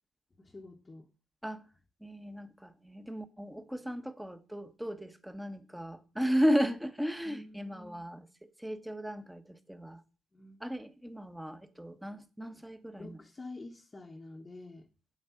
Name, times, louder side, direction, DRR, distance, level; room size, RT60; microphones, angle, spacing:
voice 1, 0.4-1.1 7.3-8.0 10.3-10.6 13.0-14.9, left 2 dB, 25° left, 1.0 m, -48 dB
voice 2, 2.0-10.0 10.6-13.2, equal, 5° right, 1.1 m, -35 dB
8.3 x 8.1 x 5.7 m
cardioid pair, 90°, 0 cm